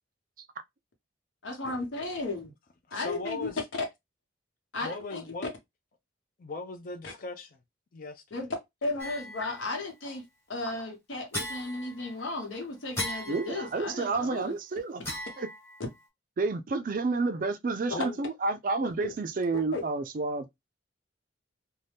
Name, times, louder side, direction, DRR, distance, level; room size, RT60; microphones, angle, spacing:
voice 1, 1.4-2.5 2.9-3.5 4.7-5.2 7.0-7.1 8.3-8.5 8.8-14.5 19.7-19.8, left 2 dB, 85° left, 1.1 m, -35 dB
voice 2, 2.9-3.6 4.8-5.5 6.4-7.6 7.9-8.2 17.9-18.2, left 3 dB, 45° left, 0.4 m, -38 dB
sound 1, 9.0-9.7 11.3-12.4 12.9-14.1 15.0-16.0, left 1 dB, 15° left, 1.0 m, -38 dB
voice 3, 13.3-15.5 16.4-20.5, right 3 dB, 45° right, 0.4 m, -30 dB
2.7 x 2.2 x 3.3 m
head